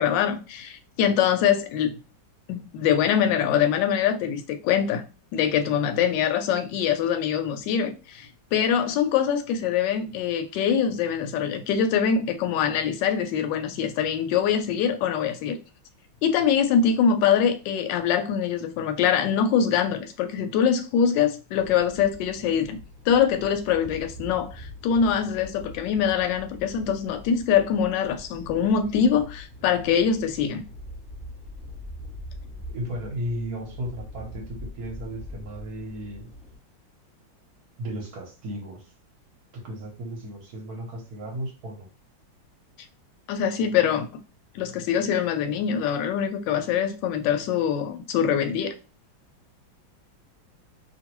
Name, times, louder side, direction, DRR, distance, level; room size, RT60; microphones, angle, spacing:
voice 1, 0.0-2.0 2.5-5.0 5.3-15.6 16.2-22.8 23.1-30.7 43.3-44.1 44.5-48.7, left 8 dB, 75° left, 1.1 m, -24 dB
sound 1, 21.6-36.6, left 1 dB, 5° right, 1.1 m, -43 dB
voice 2, 32.7-36.3 37.8-38.8 39.6-41.9, equal, 60° right, 1.2 m, -35 dB
3.0 x 2.5 x 2.9 m
omnidirectional pair, 2.2 m